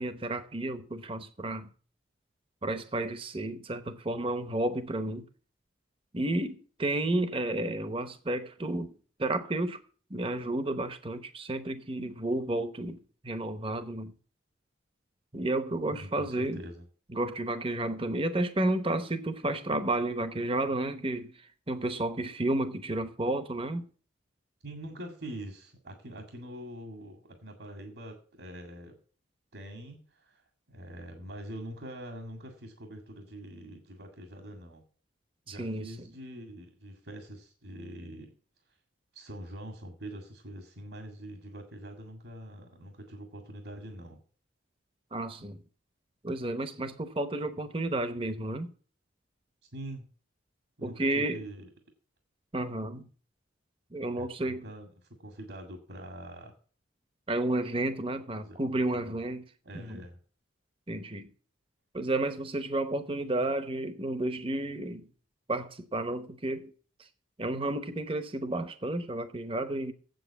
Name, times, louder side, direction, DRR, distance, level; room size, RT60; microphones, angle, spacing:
voice 1, 0.0-1.7 2.6-5.3 6.1-8.9 9.2-9.8 10.1-14.1 15.3-16.7 17.1-23.8 35.5-35.9 45.1-45.6 46.2-48.7 50.8-51.4 52.5-53.1 53.9-54.7 57.3-59.5 59.7-60.0 60.9-61.3 61.9-65.1 65.5-66.7 67.4-69.9, right 2 dB, 25° right, 0.8 m, -32 dB
voice 2, 15.9-16.8 24.6-29.0 29.5-34.8 35.5-38.3 39.1-44.2 49.7-50.1 50.8-51.7 54.1-54.9 55.2-56.5 58.4-58.6 59.0-59.1 59.6-60.2, right 1 dB, 70° right, 2.1 m, -44 dB
7.9 x 7.8 x 8.1 m
head